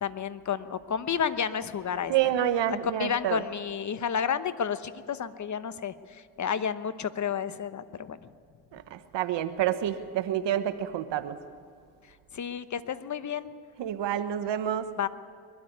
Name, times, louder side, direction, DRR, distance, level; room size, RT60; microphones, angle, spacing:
voice 1, 0.0-8.2 12.3-13.5 15.0-15.1, left 7 dB, 40° left, 12 dB, 1.1 m, -31 dB
voice 2, 2.1-3.4 8.7-11.4 13.8-14.9, right 11 dB, 75° right, 10 dB, 1.2 m, -28 dB
22.0 x 13.0 x 9.4 m, 2.2 s
cardioid pair, 75°, 43 cm